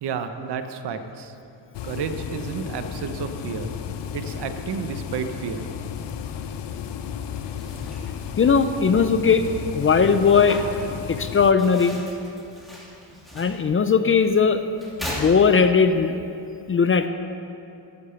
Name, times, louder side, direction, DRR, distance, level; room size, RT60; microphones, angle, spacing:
voice 1, 0.0-1.3 1.8-3.7 4.1-5.7, right 6 dB, 60° right, 8 dB, 1.0 m, -31 dB
sound 1, 1.7-11.5, left 8 dB, 65° left, 0.8 m, -33 dB
sound 2, 7.5-16.0, equal, ahead, 2.9 m, -39 dB
voice 2, 8.4-9.5 9.7-10.6 11.1-12.0 13.3-14.7 15.2-16.1 16.7-17.1, left 5 dB, 30° left, 9 dB, 0.5 m, -18 dB
14.0 x 10.0 x 5.8 m, 2.7 s
cardioid pair, 120°, 45 cm